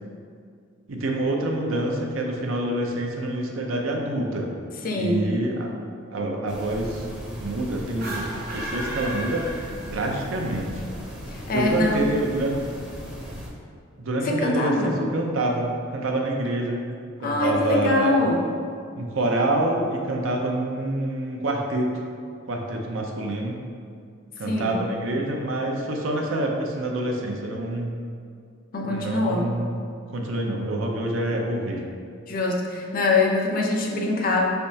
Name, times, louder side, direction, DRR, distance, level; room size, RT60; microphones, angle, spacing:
voice 1, 0.9-4.5 4.9-5.7 6.1-8.2 8.5-10.8 11.5-12.7 14.0-16.8 17.2-18.3 19.0-21.9 22.5-23.6 24.4-27.9 28.8-29.7 30.1-31.8, right 1 dB, 85° right, 0 dB, 0.6 m, -27 dB
voice 2, 4.8-5.3 11.3-12.1 14.2-15.0 17.2-18.4 24.5-24.8 28.7-29.5 32.3-34.5, left 2 dB, 45° left, 0 dB, 0.6 m, -23 dB
sound 1, 6.5-13.5, equal, 5° right, 0.6 m, -38 dB
sound 2, 7.9-10.2, right 1 dB, 50° right, 0.8 m, -34 dB
5.2 x 3.4 x 2.7 m, 2.3 s
head